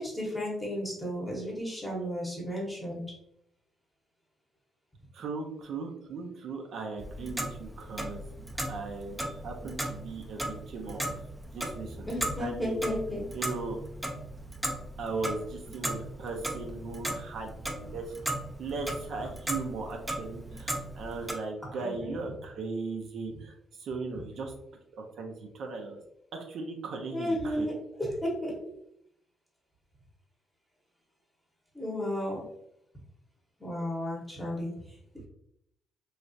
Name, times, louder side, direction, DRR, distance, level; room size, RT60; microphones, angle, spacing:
voice 1, 0.0-3.0 12.1-13.3 21.7-22.2 27.1-27.7 28.0-28.5 31.7-32.4 33.6-34.9, equal, 10° left, -3 dB, 0.9 m, -33 dB
voice 2, 5.1-8.3 8.7-11.1 11.5-12.1 12.4-12.8 13.3-13.8 15.0-18.1 18.6-24.5 24.9-26.0 26.3-27.7, right 3 dB, 65° right, 2 dB, 0.5 m, -38 dB
Clock, 7.0-21.3, right 1 dB, 10° right, 0.4 m, -37 dB
3.1 x 2.3 x 2.6 m, 0.75 s
cardioid pair, 120°, 0 cm